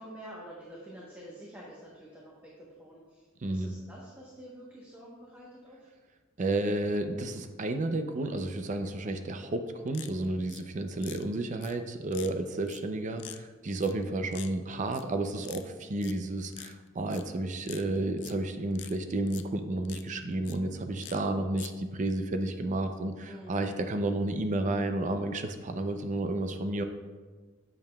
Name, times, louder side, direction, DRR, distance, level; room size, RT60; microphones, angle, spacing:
voice 1, 0.0-5.9 23.2-23.6, equal, 10° right, -5 dB, 1.0 m, -48 dB
voice 2, 3.4-3.7 6.4-26.8, right 2 dB, 40° right, 7 dB, 0.5 m, -31 dB
sound 1, 9.9-10.6 11.0-11.2 11.6-11.7 12.1-12.3 12.7-12.8 13.2-13.4 13.8-14.0 14.3-14.5 14.9-15.1 15.4-15.7 16.0-16.1 16.5-16.7 17.1-17.2 17.6-18.3 18.7-18.9 19.3-19.4 19.8-20.0 20.4-20.6 21.0-21.2 21.6-21.7, left 13 dB, 60° left, 0.4 m, -45 dB
8.3 x 6.9 x 2.3 m, 1.4 s
head